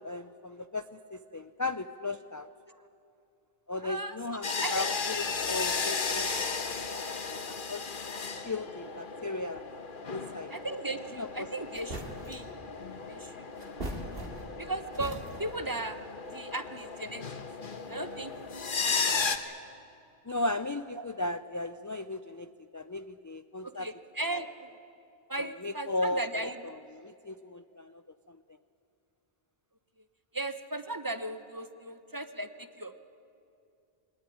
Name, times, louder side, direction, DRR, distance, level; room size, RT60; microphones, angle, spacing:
voice 1, 0.0-2.5 3.7-6.6 6.9-7.8 8.4-9.6 10.1-10.5 11.1-11.5 20.3-23.9 25.4-28.0 28.3-28.4, left 2 dB, 30° left, 11 dB, 0.3 m, -36 dB
voice 2, 3.8-4.2 4.6-5.0 5.4-5.5 10.5-12.0 12.3-12.5 13.1-13.5 14.6-16.0 16.3-17.2 17.9-18.3 18.8-19.1 19.5-19.6 20.9-21.0 23.6-24.7 25.3-26.7 30.3-32.9, right 2 dB, 20° right, 10 dB, 0.8 m, -36 dB
sound 1, 4.4-19.4, left 4 dB, 55° left, 1.3 m, -35 dB
sound 2, 11.3-11.4 11.7-12.6 13.6-14.6 14.9-15.6, right 1 dB, 60° right, 2.6 m, -40 dB
22.5 x 18.5 x 9.9 m, 2.6 s
omnidirectional pair, 1.1 m